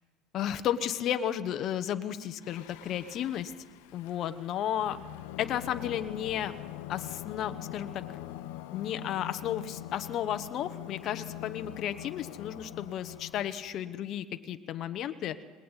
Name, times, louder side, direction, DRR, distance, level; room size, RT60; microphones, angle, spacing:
voice 1, 0.3-3.5 3.9-5.0 5.4-6.5 6.9-8.0 8.7-15.4, left 10 dB, 45° left, 9 dB, 1.2 m, -33 dB
Singing, 2.4-13.7, left 13 dB, 80° left, 1.1 m, -43 dB
20.5 x 20.0 x 9.1 m, 1.5 s
cardioid pair, 135°, 0 cm